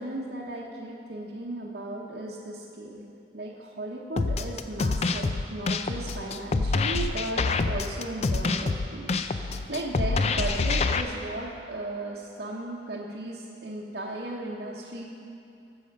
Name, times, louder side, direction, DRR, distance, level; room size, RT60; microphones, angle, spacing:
voice 1, 0.0-15.0, right 1 dB, 60° right, -5 dB, 0.9 m, -36 dB
sound 1, 4.2-11.0, left 3 dB, 35° left, 0.4 m, -26 dB
14.0 x 6.8 x 5.3 m, 2.7 s
head